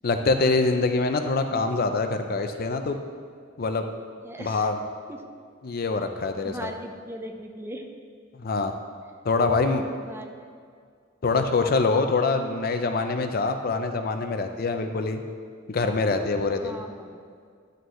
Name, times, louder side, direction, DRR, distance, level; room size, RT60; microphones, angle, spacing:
voice 1, 0.0-3.0 3.6-3.8 4.4-4.8 5.6-6.7 8.3-8.7 9.2-9.8 11.2-15.2 15.7-16.8, left 3 dB, 50° left, 7 dB, 0.5 m, -24 dB
voice 2, 4.2-4.7 5.1-5.3 6.4-7.9 10.0-10.3 16.6-17.1, right 1 dB, 10° right, 4 dB, 0.5 m, -39 dB
11.0 x 6.6 x 3.2 m, 2.1 s
head